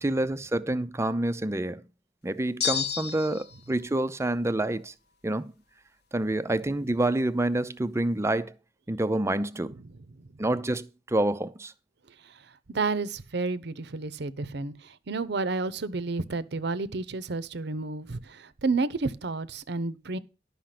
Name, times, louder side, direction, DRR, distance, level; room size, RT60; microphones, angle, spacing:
voice 1, 0.0-1.8 2.2-4.9 5.2-5.5 6.1-8.5 8.9-9.7 10.4-11.7, right 1 dB, 15° right, 0.5 m, -27 dB
sound 1, 2.6-3.6, left 8 dB, 60° left, 0.8 m, -30 dB
voice 2, 12.7-20.2, right 3 dB, 65° right, 0.7 m, -31 dB
11.5 x 5.7 x 5.9 m
head